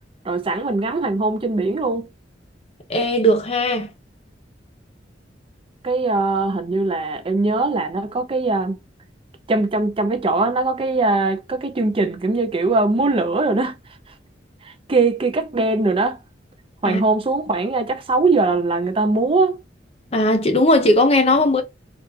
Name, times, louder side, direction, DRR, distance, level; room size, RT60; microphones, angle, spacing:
voice 1, 0.2-2.1 5.8-8.8 9.5-13.7 14.6-16.2 16.8-19.6, right 3 dB, 30° right, 0.5 m, -21 dB
voice 2, 2.9-3.9 16.9-17.0 20.1-21.6, left 1 dB, 35° left, 0.6 m, -17 dB
3.4 x 2.4 x 2.8 m
head